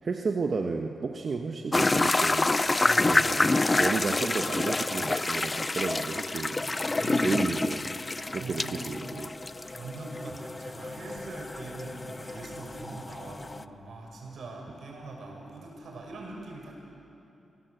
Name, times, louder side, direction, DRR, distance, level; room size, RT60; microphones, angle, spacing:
voice 1, 0.0-2.6 3.1-6.8 7.2-7.9 8.3-9.3, right 4 dB, 50° right, 3 dB, 1.2 m, -32 dB
sound 1, 1.7-13.6, left 2 dB, 25° left, 0.5 m, -28 dB
voice 2, 2.8-3.2 6.9-7.3 8.3-8.9 9.7-16.7, right 3 dB, 75° right, 0 dB, 6.3 m, -42 dB
sound 2, 6.5-14.7, left 2 dB, 75° left, 6.0 m, -58 dB
28.0 x 17.5 x 8.0 m, 2.9 s
cardioid pair, 95°, 0 cm